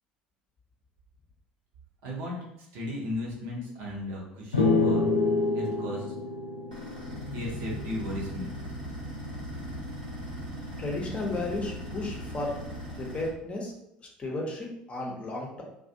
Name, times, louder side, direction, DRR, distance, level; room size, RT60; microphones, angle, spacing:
voice 1, 2.0-2.4 2.7-5.0 5.5-6.1 7.3-8.5, left 1 dB, 60° right, -3 dB, 0.8 m, -35 dB
sound 1, 4.5-8.1, left 3 dB, 80° left, 0.4 m, -27 dB
sound 2, 6.7-13.3, equal, 85° right, 0.9 m, -38 dB
voice 2, 10.8-12.6 13.0-13.7 14.0-15.6, left 2 dB, 25° left, -1 dB, 0.7 m, -34 dB
2.4 x 2.3 x 2.6 m, 0.81 s
figure-of-eight pair, 65°, 5 cm